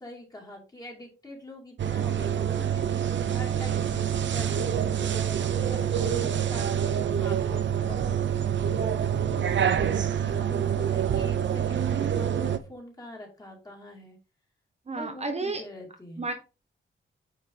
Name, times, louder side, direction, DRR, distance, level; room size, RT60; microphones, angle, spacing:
voice 1, 0.0-2.8 3.3-9.2 10.2-14.2 14.9-16.2, left 1 dB, 20° left, 1 dB, 2.5 m, -44 dB
sound 1, 1.8-12.6, right 9 dB, 65° right, 0.8 m, -26 dB
voice 2, 9.7-10.1 14.9-15.6 16.2-16.3, right 3 dB, 30° right, 5 dB, 1.1 m, -32 dB
9.4 x 4.6 x 3.8 m, 0.31 s
wide cardioid pair, 155°, 20 cm